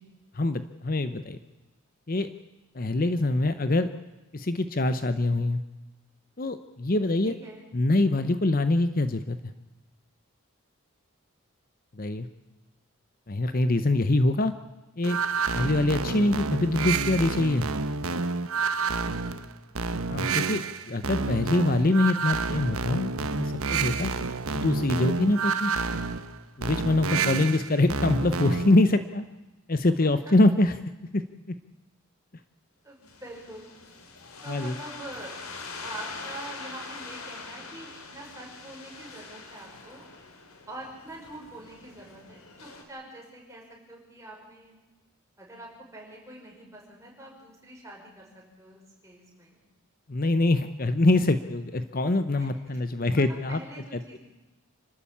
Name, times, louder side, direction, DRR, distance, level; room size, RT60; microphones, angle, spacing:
voice 1, 0.3-1.4 2.1-2.3 2.7-3.9 4.3-5.6 6.4-7.3 7.7-9.4 12.0-12.3 13.3-14.5 15.0-15.2 15.5-17.7 20.1-23.1 23.4-24.1 24.5-25.7 26.6-29.2 29.7-30.8 31.1-31.2 31.5-31.6 34.5-34.7 50.1-53.6 53.9-54.2, left 2 dB, 40° left, 11 dB, 0.8 m, -24 dB
voice 2, 7.2-7.7 30.1-30.2 32.8-33.7 34.4-35.4 35.8-40.0 40.7-44.8 45.4-49.6 52.4-52.5 52.7-52.8 53.2-54.2, right 1 dB, 15° right, -2 dB, 5.8 m, -45 dB
sound 1, 15.0-28.8, right 4 dB, 85° right, 1.1 m, -29 dB
sound 2, 33.1-42.8, left 4 dB, 85° left, 3.3 m, -43 dB
27.5 x 13.0 x 8.6 m, 1.1 s
head